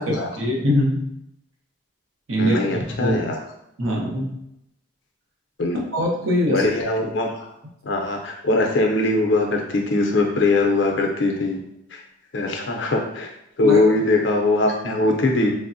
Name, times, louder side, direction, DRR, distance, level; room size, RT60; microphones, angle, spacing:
voice 1, 0.4-1.1 2.3-3.2 3.8-4.4 5.9-6.7 13.6-13.8, left 1 dB, 90° right, -2 dB, 0.7 m, -22 dB
voice 2, 2.4-3.4 5.6-5.8 6.5-7.3 7.8-11.6 11.9-12.0 12.3-13.3 13.6-15.5, left 2 dB, 65° left, 2 dB, 0.5 m, -21 dB
3.3 x 2.0 x 2.6 m, 0.81 s
head